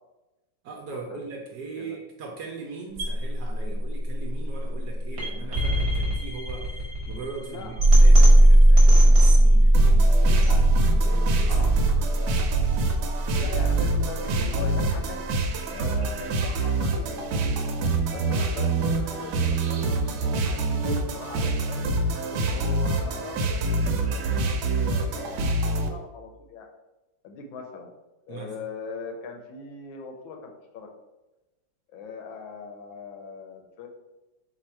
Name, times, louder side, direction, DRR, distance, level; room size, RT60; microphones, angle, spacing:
voice 1, 0.6-11.6 28.3-28.5, right 4 dB, 65° right, 0 dB, 1.1 m, -40 dB
sound 1, 3.0-15.0, right 1 dB, 40° right, 1.2 m, -19 dB
voice 2, 7.4-8.5 10.5-10.6 11.5-11.8 13.3-15.2 15.6-17.1 17.4-17.6 18.1-21.8 22.3-26.7 27.2-27.9 28.3-30.9 31.9-33.9, left 4 dB, 80° left, 3 dB, 1.5 m, -40 dB
sound 2, 9.7-25.9, right 3 dB, 85° right, 1.4 m, -26 dB
4.2 x 2.6 x 4.4 m, 1.0 s
omnidirectional pair, 2.2 m